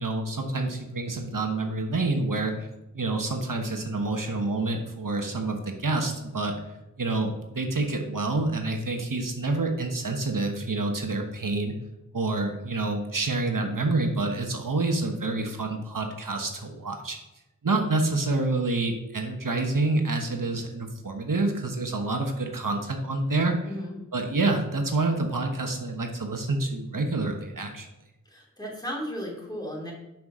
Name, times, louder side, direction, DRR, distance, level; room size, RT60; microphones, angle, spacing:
voice 1, 0.0-2.7 2.9-6.6 7.0-11.7 12.1-17.2 17.6-23.8 24.1-27.9, right 2 dB, 75° right, 3 dB, 1.1 m, -27 dB
voice 2, 23.6-24.0 28.3-29.9, equal, 10° left, -3 dB, 3.0 m, -35 dB
6.2 x 5.8 x 6.2 m, 0.97 s
wide cardioid pair, 45°, 33 cm